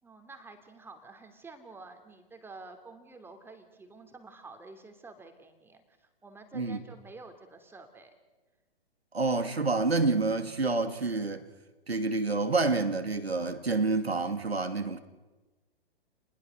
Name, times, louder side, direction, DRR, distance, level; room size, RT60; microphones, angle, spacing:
voice 1, 0.0-8.1, right 3 dB, 5° right, 2.8 m, -49 dB
voice 2, 9.1-11.5 11.9-15.0, right 3 dB, 80° right, 2.4 m, -28 dB
29.5 x 21.0 x 6.4 m
figure-of-eight pair, 115°, 30 cm